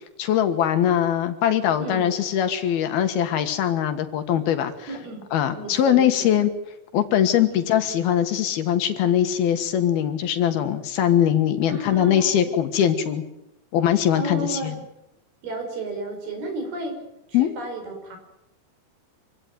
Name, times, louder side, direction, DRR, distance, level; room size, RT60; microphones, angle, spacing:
voice 1, 0.2-4.7 5.3-6.5 6.9-13.2 13.7-14.7 17.3-17.5, left 10 dB, 70° left, 9 dB, 3.3 m, -21 dB
voice 2, 4.9-5.2 5.5-6.4 7.5-7.6 11.7-12.6 14.1-14.8 15.4-17.0 17.3-18.2, right 2 dB, 65° right, 4 dB, 7.3 m, -33 dB
26.0 x 16.5 x 9.4 m, 0.89 s
omnidirectional pair, 4.7 m